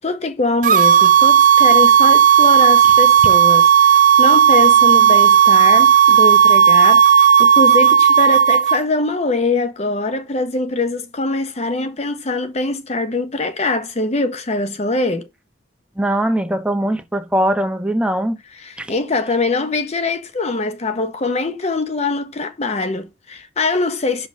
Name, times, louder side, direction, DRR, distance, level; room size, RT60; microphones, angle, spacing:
voice 1, 0.0-15.3 18.5-24.3, left 2 dB, 35° left, 0.7 m, -22 dB
sound 1, 0.6-8.8, right 8 dB, 45° right, 0.5 m, -12 dB
voice 2, 16.0-18.4 18.8-18.9, right 1 dB, 5° right, 0.9 m, -20 dB
7.4 x 3.9 x 6.2 m
head